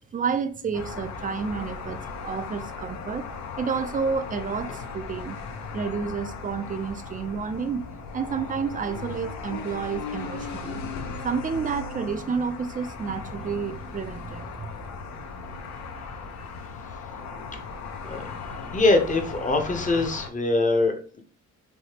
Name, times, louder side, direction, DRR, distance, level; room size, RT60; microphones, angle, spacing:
voice 1, 0.1-3.2 3.6-5.4 5.7-7.8 8.1-10.8 11.2-14.7 15.5-15.6, right 6 dB, 30° right, 0.4 m, -30 dB
sound 1, 0.7-20.3, left 4 dB, 65° left, 0.6 m, -37 dB
voice 2, 18.7-21.2, left 2 dB, 25° left, 0.7 m, -23 dB
3.3 x 2.7 x 2.8 m
cardioid pair, 90°, 30 cm